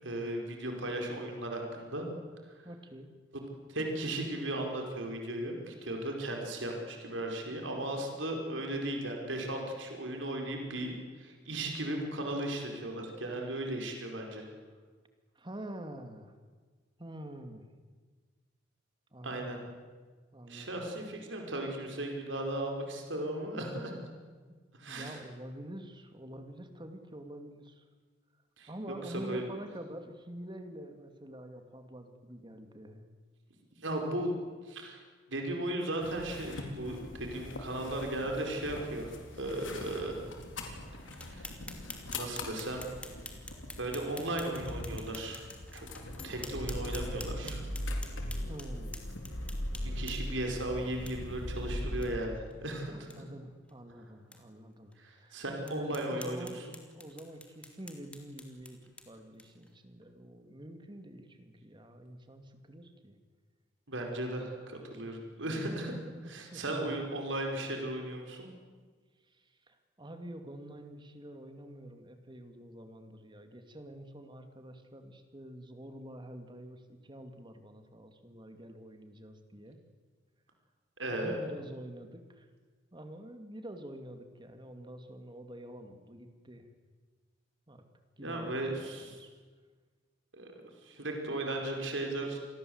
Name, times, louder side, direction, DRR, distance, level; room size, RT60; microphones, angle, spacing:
voice 1, 0.0-2.1 3.3-3.4 3.7-14.4 19.2-19.6 20.5-23.9 24.8-25.2 28.6-28.7 29.1-29.4 33.8-34.3 34.7-35.0 35.3-40.3 41.2-41.5 42.1-42.8 43.8-45.9 46.2-47.6 49.8-53.2 55.0-56.6 63.9-65.9 66.3-68.5 81.0-81.4 88.2-89.2 90.3-92.4, right 1 dB, 75° right, 2 dB, 5.0 m, -36 dB
voice 2, 2.6-3.1 15.4-16.3 17.0-17.7 19.1-19.6 20.3-20.9 24.5-24.6 24.8-27.8 28.7-33.1 48.5-49.0 52.9-55.4 55.6-56.6 56.9-63.2 66.2-66.9 69.7-79.8 81.2-82.5 82.9-86.7 87.7-87.9 88.2-89.3, right 1 dB, 25° right, 6 dB, 2.5 m, -47 dB
sound 1, 36.0-52.1, left 1 dB, 80° left, 4.0 m, -40 dB
sound 2, 41.1-50.4 51.1-51.2 51.5-51.6 52.0-52.1 52.5-52.6 52.9-53.2 53.7-53.8 54.3-54.4 54.9-55.0 55.6-59.7, left 2 dB, 5° left, 2.8 m, -49 dB
28.0 x 21.0 x 8.0 m, 1.5 s
head